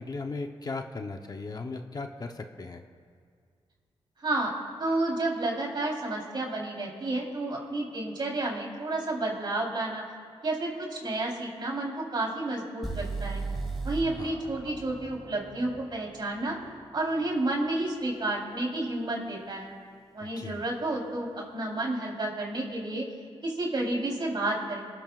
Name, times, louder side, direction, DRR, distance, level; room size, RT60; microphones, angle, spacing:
voice 1, 0.0-2.8 14.2-14.4 20.4-20.6, left 3 dB, 40° left, 5 dB, 0.8 m, -37 dB
voice 2, 4.2-4.5 4.8-10.0 10.4-13.4 13.8-16.6 16.9-19.7 20.1-23.1 23.4-24.8, right 2 dB, 45° right, -2 dB, 3.6 m, -31 dB
sound 1, 12.8-16.8, right 3 dB, ahead, 4.1 m, -36 dB
29.5 x 14.0 x 2.4 m, 2.1 s
wide cardioid pair, 110°, 11 cm